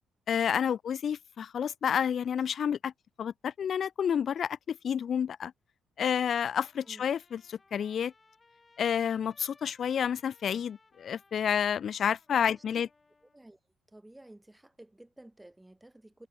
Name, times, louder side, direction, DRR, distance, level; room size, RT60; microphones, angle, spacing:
voice 1, 0.3-2.9 3.2-5.5 6.0-8.1 8.8-12.9, left 8 dB, 55° left, 0.4 m, -30 dB
Trumpet, 6.2-13.4, left 3 dB, 25° left, 5.9 m, -64 dB
voice 2, 12.3-12.6 13.3-13.6 13.9-16.3, right 1 dB, 10° right, 6.7 m, -53 dB
cardioid pair, 90°, 0 cm